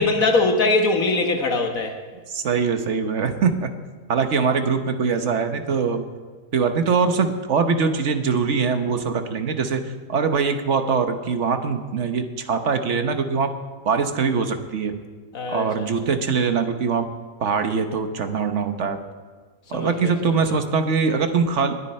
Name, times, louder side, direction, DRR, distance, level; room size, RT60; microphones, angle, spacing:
voice 1, 0.0-2.0 15.3-15.9 19.7-20.5, left 3 dB, 70° left, 4 dB, 1.8 m, -22 dB
voice 2, 2.3-3.7 4.1-6.0 6.5-13.5 13.8-15.0 15.5-17.1 17.4-19.0 19.7-21.7, right 5 dB, 55° right, 7 dB, 1.3 m, -22 dB
20.0 x 9.9 x 4.3 m, 1.5 s
omnidirectional pair, 1.5 m